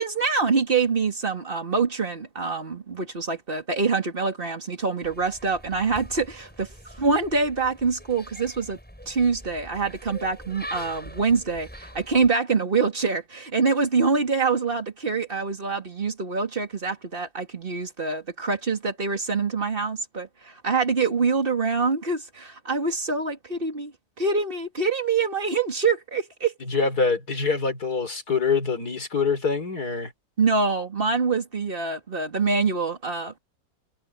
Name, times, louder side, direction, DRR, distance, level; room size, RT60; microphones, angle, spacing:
voice 1, 0.0-6.7 7.0-8.8 9.1-23.9 24.2-26.5 30.4-33.4, right 4 dB, 35° right, 2.7 m, -25 dB
sound 1, 5.0-12.3, equal, 5° left, 7.7 m, -43 dB
voice 2, 26.7-30.1, left 4 dB, 70° left, 4.7 m, -25 dB
omnidirectional pair, 1.7 m